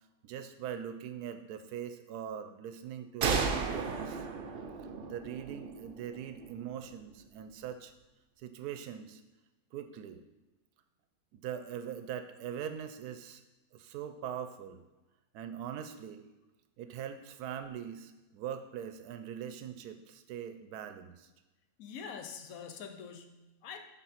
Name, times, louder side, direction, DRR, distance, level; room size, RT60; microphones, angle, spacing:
voice 1, 0.2-4.3 5.1-7.9 8.4-9.2 9.7-10.2 11.3-13.4 13.7-14.8 15.3-16.2 16.8-21.3, right 9 dB, 85° right, 9 dB, 1.1 m, -42 dB
sound 1, 3.2-6.7, right 5 dB, 55° right, 0.7 m, -34 dB
voice 2, 21.8-23.8, left 6 dB, 70° left, 7 dB, 1.1 m, -45 dB
6.7 x 3.9 x 5.7 m, 1.1 s
omnidirectional pair, 1.6 m